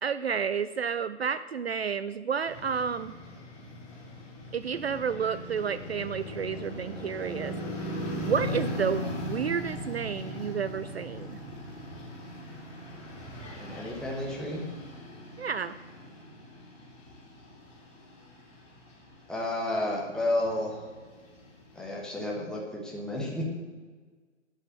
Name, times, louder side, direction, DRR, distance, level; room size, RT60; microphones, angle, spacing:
voice 1, 0.0-3.1 4.5-7.5 7.9-11.4 15.4-15.8, right 7 dB, 60° right, 14 dB, 0.4 m, -31 dB
sound 1, 2.5-22.2, left 1 dB, 20° left, 3.4 m, -39 dB
voice 2, 13.6-14.7 19.3-20.8 21.7-23.4, left 1 dB, ahead, -3 dB, 1.1 m, -31 dB
11.0 x 5.7 x 7.3 m, 1.4 s
figure-of-eight pair, 125°, 37 cm